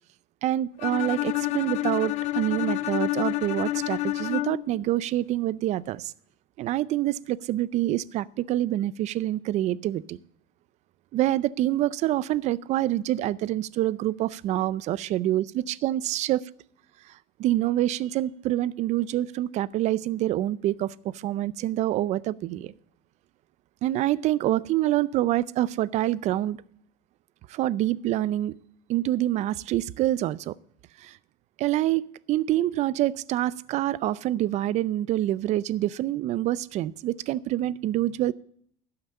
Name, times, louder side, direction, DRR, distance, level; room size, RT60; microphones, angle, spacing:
voice 1, 0.4-6.1 6.6-10.2 11.1-16.4 17.4-22.7 23.8-26.6 27.5-28.5 28.9-30.5 31.0-31.2 31.6-32.0 32.3-38.3, right 14 dB, 50° right, 0.4 m, -26 dB
Bowed string instrument, 0.8-4.8, left 17 dB, 50° left, 0.4 m, -29 dB
12.0 x 5.9 x 8.3 m
cardioid pair, 145°, 16 cm